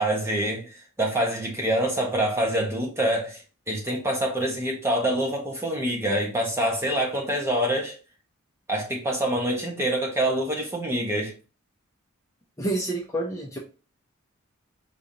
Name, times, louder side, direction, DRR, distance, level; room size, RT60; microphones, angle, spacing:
voice 1, 0.0-3.4 3.7-8.0 8.7-11.3, right 1 dB, 15° right, 1.3 m, -26 dB
voice 2, 12.6-13.6, right 2 dB, 15° left, 0.9 m, -28 dB
5.1 x 3.4 x 2.8 m
head